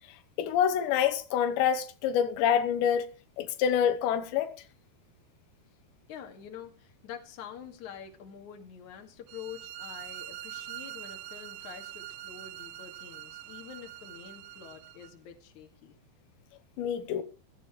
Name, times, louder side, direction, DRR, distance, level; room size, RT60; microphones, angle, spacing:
voice 1, 0.4-3.1 3.4-4.5 16.8-17.2, left 8 dB, 85° left, 3.3 m, -26 dB
voice 2, 6.1-16.0, left 8 dB, 50° left, 3.0 m, -46 dB
sound 1, 9.3-15.1, right 14 dB, 75° right, 2.8 m, -44 dB
16.5 x 15.5 x 3.2 m
omnidirectional pair, 4.9 m